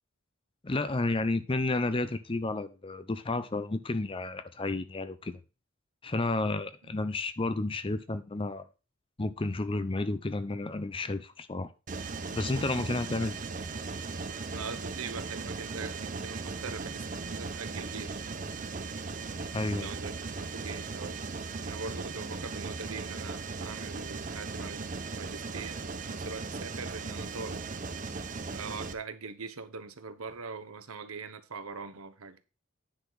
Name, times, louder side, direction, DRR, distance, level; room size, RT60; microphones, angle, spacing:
voice 1, 0.6-5.4 6.0-8.6 9.2-11.7 12.3-13.4 19.5-19.9, left 2 dB, 25° left, 0.6 m, -31 dB
Mechanisms, 11.9-28.9, right 4 dB, 35° right, 0.7 m, -38 dB
voice 2, 14.5-18.2 19.7-21.2 21.6-25.8 26.1-27.6 28.5-32.4, right 4 dB, 80° right, 1.0 m, -42 dB
9.8 x 4.1 x 6.2 m
head